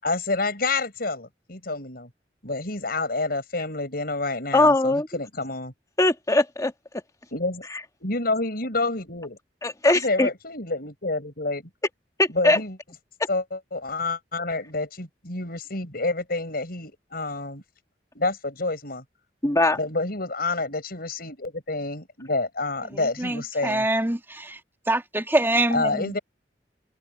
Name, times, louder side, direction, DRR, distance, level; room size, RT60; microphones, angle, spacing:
voice 1, 0.0-2.1 2.4-5.7 7.3-7.7 8.0-9.4 10.0-11.6 12.3-12.8 13.3-17.6 18.1-19.0 19.7-23.9 25.7-26.2, left 3 dB, 60° left, 7.5 m, -28 dB
voice 2, 4.5-5.1 6.0-6.7 9.6-10.3 12.2-12.6 19.4-19.8, left 2 dB, 20° left, 1.6 m, -20 dB
voice 3, 22.9-24.6 24.9-26.1, right 1 dB, 15° right, 2.5 m, -25 dB
head